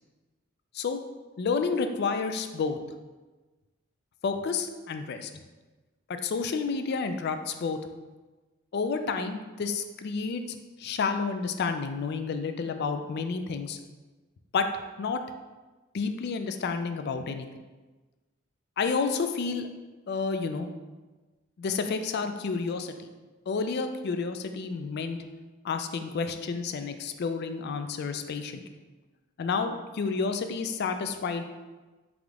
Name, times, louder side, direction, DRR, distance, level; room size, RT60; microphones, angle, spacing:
voice 1, 1.4-2.8 4.2-5.4 6.1-7.8 8.7-10.4 10.8-13.8 14.5-14.7 15.0-15.2 15.9-17.5 18.8-19.7 20.1-20.7 21.6-23.1 23.5-25.2 25.6-28.6 29.4-31.5, left 5 dB, 50° left, 8 dB, 0.3 m, -30 dB
3.7 x 3.5 x 3.4 m, 1.2 s
head